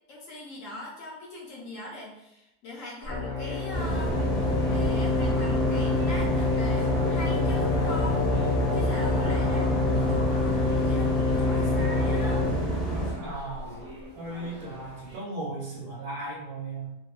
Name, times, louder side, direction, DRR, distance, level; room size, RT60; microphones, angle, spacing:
voice 1, 0.1-4.1 4.7-8.2 8.7-12.5, left 2 dB, 65° left, -4 dB, 0.9 m, -41 dB
sound 1, 3.0-15.2, equal, 50° right, 0.6 m, -43 dB
sound 2, 3.1-12.5, left 5 dB, 90° left, 1.1 m, -27 dB
sound 3, 3.7-13.1, right 2 dB, ahead, 0.4 m, -28 dB
voice 2, 9.3-10.4 13.2-13.9 14.2-17.0, right 3 dB, 80° right, -5 dB, 1.1 m, -37 dB
2.8 x 2.0 x 2.3 m, 0.85 s
omnidirectional pair, 1.6 m